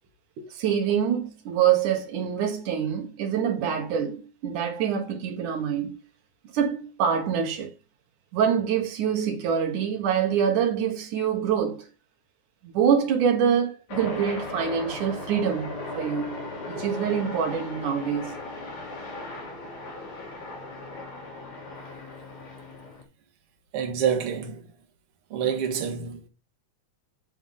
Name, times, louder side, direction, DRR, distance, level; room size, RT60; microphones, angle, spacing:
voice 1, 0.4-6.0 6.5-7.7 8.3-11.9 12.6-18.3, right 8 dB, 85° right, 2.9 m, -25 dB
sound 1, 13.9-23.0, left 2 dB, 85° left, 4.3 m, -37 dB
voice 2, 23.7-24.7 25.3-26.3, right 8 dB, 55° right, 2.2 m, -27 dB
7.9 x 7.1 x 3.7 m
omnidirectional pair, 3.5 m